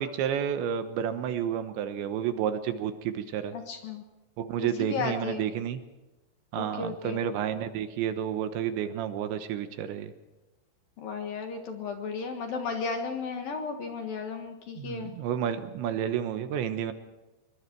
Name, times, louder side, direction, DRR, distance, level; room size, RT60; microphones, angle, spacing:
voice 1, 0.0-3.6 4.4-5.8 6.5-10.1 14.8-16.9, right 9 dB, 75° right, 10 dB, 3.2 m, -30 dB
voice 2, 3.5-4.0 4.6-5.4 6.5-7.2 11.0-15.1, left 5 dB, 60° left, 5 dB, 2.7 m, -34 dB
25.5 x 23.0 x 4.6 m, 1.1 s
omnidirectional pair, 5.7 m